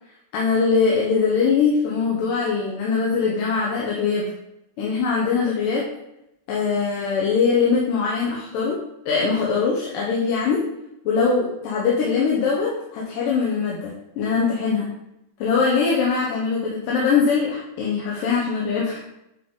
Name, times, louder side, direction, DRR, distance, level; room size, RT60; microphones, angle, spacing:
voice 1, 0.3-4.3 4.8-5.9 6.5-8.8 9.1-10.6 11.1-14.9 15.4-19.0, left 5 dB, 85° left, -4 dB, 2.6 m, -22 dB
9.1 x 3.9 x 3.6 m, 0.87 s
omnidirectional pair, 3.7 m